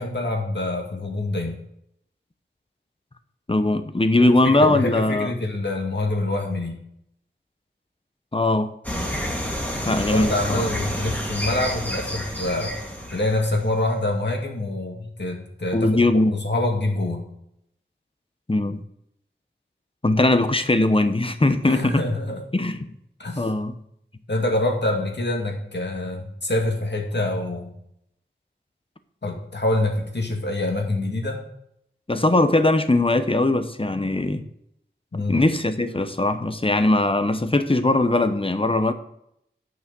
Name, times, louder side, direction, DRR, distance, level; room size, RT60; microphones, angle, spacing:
voice 1, 0.0-1.6 4.2-6.8 10.1-12.7 13.1-17.2 21.6-22.4 23.2-23.5 24.3-27.7 29.2-31.4 35.1-35.4, left 2 dB, 60° left, 1 dB, 2.0 m, -26 dB
voice 2, 3.5-5.3 8.3-8.7 9.9-10.6 15.7-16.4 18.5-18.8 20.0-22.0 22.5-22.8 23.4-23.7 32.1-34.4 35.3-38.9, left 2 dB, 25° left, 10 dB, 0.9 m, -20 dB
sound 1, 8.8-13.9, equal, 10° left, 2.2 m, -29 dB
9.6 x 6.3 x 6.2 m, 0.75 s
wide cardioid pair, 55°, 20 cm